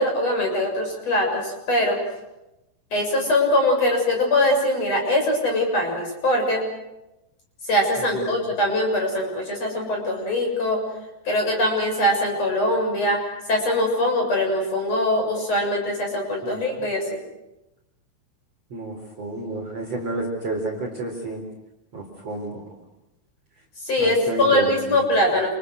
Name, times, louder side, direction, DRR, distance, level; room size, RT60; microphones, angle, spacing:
voice 1, 0.0-2.0 2.9-6.6 7.7-10.8 11.3-13.2 13.5-17.2 23.9-25.5, left 1 dB, 30° left, 1 dB, 7.6 m, -22 dB
voice 2, 18.7-21.4 21.9-22.7 24.0-25.1, right 2 dB, 35° right, 0 dB, 4.8 m, -30 dB
30.0 x 28.5 x 6.5 m, 0.94 s
omnidirectional pair, 5.7 m